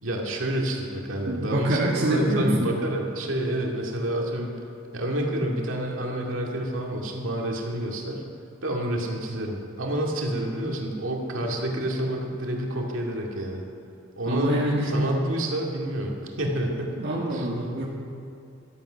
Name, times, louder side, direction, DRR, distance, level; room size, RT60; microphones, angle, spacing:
voice 1, 0.0-4.5 4.9-8.2 8.6-13.6 14.2-17.0 17.3-17.5, right 1 dB, 70° right, -1 dB, 2.3 m, -28 dB
voice 2, 1.3-2.7 14.3-14.9 17.0-17.8, right 1 dB, 55° right, -5 dB, 1.9 m, -25 dB
14.5 x 13.0 x 5.8 m, 2.6 s
head